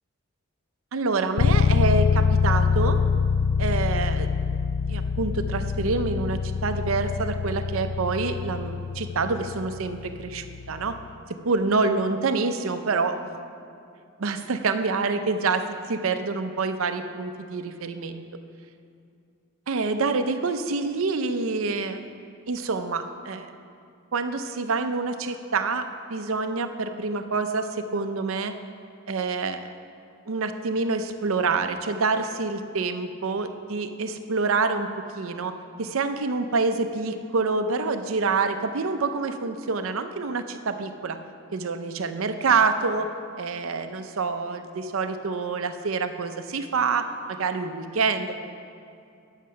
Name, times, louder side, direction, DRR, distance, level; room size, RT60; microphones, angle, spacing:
voice 1, 0.9-3.0 3.6-4.3 4.9-11.0 11.4-13.4 14.2-18.2 19.7-22.1 22.5-23.5 24.1-28.5 29.1-29.6 30.3-34.9 35.2-35.5 35.8-41.2 41.5-43.1 43.4-48.4, right 4 dB, 65° right, 8 dB, 0.6 m, -27 dB
sound 1, 1.4-11.1, left 5 dB, 85° left, 0.4 m, -25 dB
9.5 x 7.3 x 5.6 m, 2.5 s
head